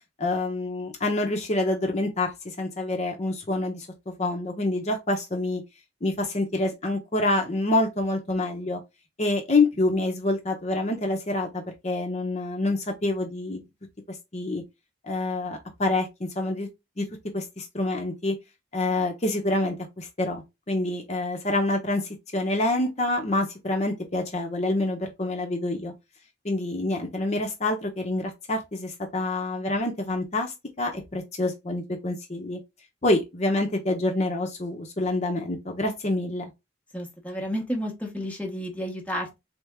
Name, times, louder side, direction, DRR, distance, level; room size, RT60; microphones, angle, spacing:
voice 1, 0.2-5.6 6.0-8.8 9.2-13.6 14.3-14.6 15.0-16.7 17.0-17.1 17.3-18.3 18.7-22.0 22.3-25.9 26.4-32.6 33.0-36.5, left 2 dB, 35° left, 0.8 m, -27 dB
voice 2, 36.9-39.4, equal, 5° left, 0.9 m, -31 dB
3.5 x 3.4 x 3.5 m
head